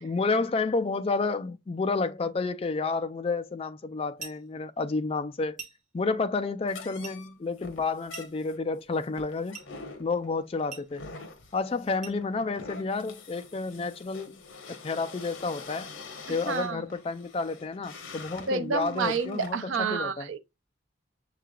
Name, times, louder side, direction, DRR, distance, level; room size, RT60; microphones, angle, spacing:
voice 1, 0.0-5.6 5.9-9.6 10.0-11.1 11.5-14.4 14.7-15.9 16.3-20.3, left 3 dB, 30° left, 0.3 m, -30 dB
sound 1, 4.2-4.5 5.6-5.9 7.0-7.3 8.1-8.5 9.5-9.8 10.7-11.0 12.0-12.3, right 5 dB, 40° right, 1.3 m, -43 dB
sound 2, 6.7-19.6, left 4 dB, 80° left, 1.0 m, -46 dB
voice 2, 16.3-16.8 18.5-20.4, right 5 dB, 80° right, 0.5 m, -29 dB
6.6 x 3.2 x 2.3 m
head